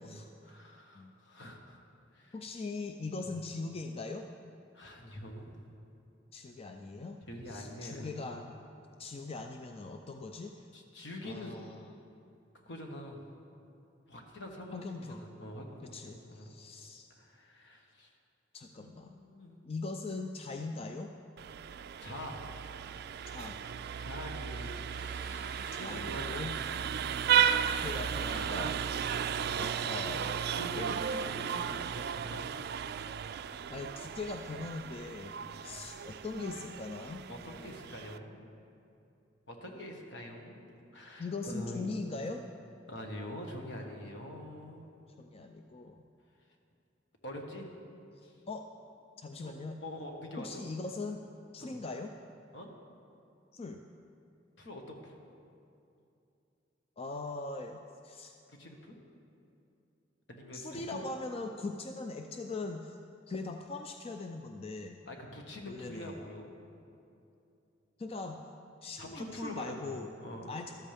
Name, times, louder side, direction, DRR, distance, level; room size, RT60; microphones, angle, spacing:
voice 1, 0.0-1.8 2.1-2.3 3.2-3.3 4.7-5.5 7.3-8.3 10.7-11.5 12.6-13.2 14.1-16.5 17.2-18.1 18.8-19.7 21.8-22.4 24.0-24.9 25.6-27.9 28.2-28.7 30.5-32.5 33.6-33.7 35.4-35.8 37.3-38.5 39.5-42.0 42.9-44.9 47.2-47.7 48.2-48.3 49.4-50.6 51.6-51.8 52.5-52.7 54.6-55.2 58.5-59.0 60.3-61.0 65.1-66.5 69.0-70.5, left 1 dB, 70° left, 1 dB, 1.6 m, -45 dB
voice 2, 2.3-4.3 6.3-7.2 7.5-8.6 9.0-10.7 11.2-11.9 14.7-15.2 15.9-17.1 18.5-19.2 19.6-21.1 23.3-23.6 25.7-26.5 27.6-28.8 29.6-30.6 33.7-35.3 35.6-37.3 41.2-42.4 45.2-46.0 48.2-48.7 49.2-49.8 50.4-51.2 51.5-52.1 53.5-53.8 57.0-58.4 60.5-63.0 63.3-65.0 65.7-66.1 68.0-68.4 68.8-70.1 70.5-70.7, left 3 dB, 30° left, 5 dB, 0.4 m, -41 dB
Vehicle horn car horn honking, 21.4-38.2, right 8 dB, 55° right, 0.3 m, -34 dB
Bowed string instrument, 24.9-31.4, left 3 dB, 50° left, 1.3 m, -57 dB
14.0 x 13.0 x 3.5 m, 2.7 s
head